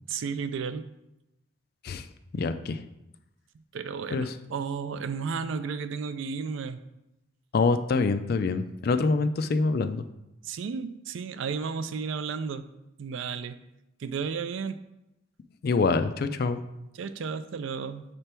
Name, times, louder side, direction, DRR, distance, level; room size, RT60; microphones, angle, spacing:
voice 1, 0.1-0.9 3.7-6.8 10.4-12.7 13.0-13.6 14.0-14.8 16.9-18.0, right 5 dB, 65° right, 12 dB, 0.3 m, -33 dB
voice 2, 2.3-2.8 4.1-4.3 7.5-10.0 15.6-16.6, left 4 dB, 50° left, 10 dB, 0.3 m, -25 dB
6.7 x 3.4 x 4.4 m, 0.91 s
head